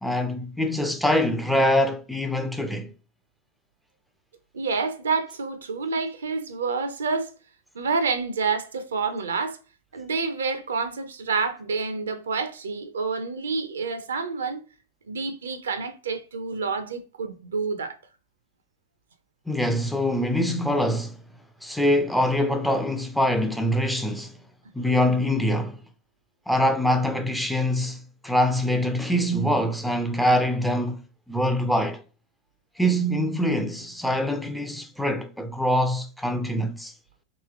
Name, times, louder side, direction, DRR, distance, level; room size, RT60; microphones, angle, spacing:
voice 1, 0.0-2.9 19.5-21.2 21.6-24.3 24.7-25.8 26.5-31.0 31.3-32.0 32.8-36.9, equal, ahead, 0.4 m, -24 dB
voice 2, 4.5-7.3 7.7-9.6 9.9-14.6 15.1-18.0, right 4 dB, 70° right, 0.6 m, -28 dB
3.1 x 3.0 x 3.4 m
figure-of-eight pair, 90°, 0 cm